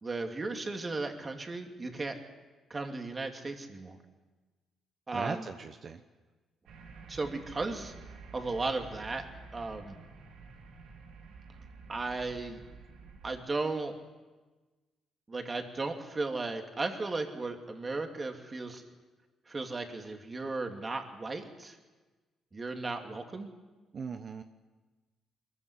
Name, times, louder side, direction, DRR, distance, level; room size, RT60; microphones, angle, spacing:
voice 1, 0.0-2.2 2.7-4.0 5.1-5.5 7.1-7.9 8.3-9.3 9.5-10.0 11.9-12.6 13.2-14.0 15.3-18.8 19.5-21.8 22.5-23.5, right 3 dB, 30° right, 4 dB, 2.7 m, -35 dB
voice 2, 5.1-6.0 23.9-24.4, right 5 dB, 50° right, 7 dB, 1.0 m, -38 dB
sound 1, 6.7-13.4, right 4 dB, 85° right, 3.0 m, -50 dB
22.5 x 15.0 x 9.8 m, 1.3 s
cardioid pair, 90°, 0 cm